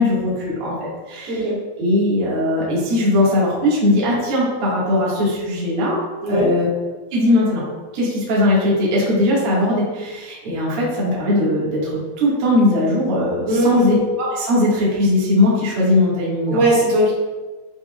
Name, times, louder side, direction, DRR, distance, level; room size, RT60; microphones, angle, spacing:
voice 1, 0.0-1.4 1.8-6.0 6.3-6.7 7.1-7.6 7.9-16.6, left 1 dB, 45° right, -7 dB, 2.0 m, -19 dB
voice 2, 13.5-14.0 16.5-17.1, equal, 65° right, -6 dB, 3.9 m, -18 dB
12.0 x 4.2 x 2.5 m, 1.3 s
omnidirectional pair, 5.2 m